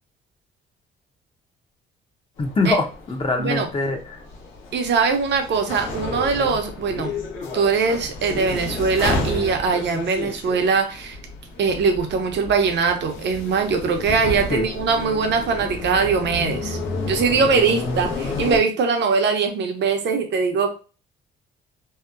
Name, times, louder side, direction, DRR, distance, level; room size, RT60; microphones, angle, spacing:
sound 1, 2.4-18.6, left 2 dB, 75° left, 0.9 m, -31 dB
voice 1, 2.4-4.2 14.5-14.7 18.3-18.4, left 3 dB, 30° left, 4 dB, 0.6 m, -23 dB
voice 2, 3.4-3.7 4.7-7.2 7.5-11.2 11.6-16.8 17.0-20.7, right 5 dB, 60° right, 5 dB, 0.7 m, -21 dB
2.8 x 2.1 x 2.4 m, 0.36 s
cardioid pair, 90°, 20 cm